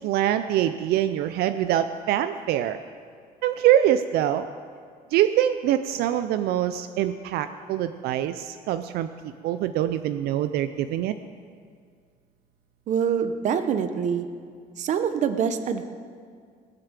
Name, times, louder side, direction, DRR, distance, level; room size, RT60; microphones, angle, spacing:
voice 1, 0.0-2.8 3.4-4.5 5.1-9.1 9.4-11.1, right 11 dB, 80° right, 10 dB, 0.5 m, -24 dB
voice 2, 12.9-14.3 14.8-15.8, right 7 dB, 50° right, 9 dB, 0.9 m, -25 dB
19.5 x 6.8 x 7.4 m, 2.1 s
cardioid pair, 160°, 16 cm